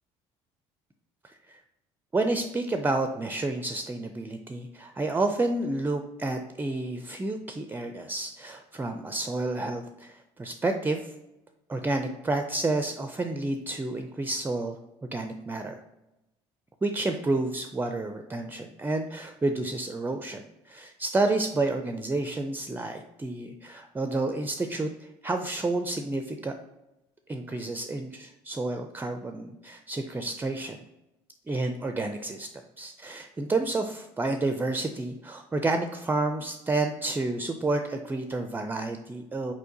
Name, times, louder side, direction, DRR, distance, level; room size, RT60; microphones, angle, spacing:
voice 1, 1.2-1.6 2.1-11.1 11.7-14.8 15.1-15.8 16.8-26.5 27.3-30.8 31.5-32.5 32.8-39.5, right 2 dB, 15° right, 6 dB, 0.4 m, -30 dB
4.5 x 4.3 x 2.8 m, 0.94 s
hypercardioid pair, 70°, 14 cm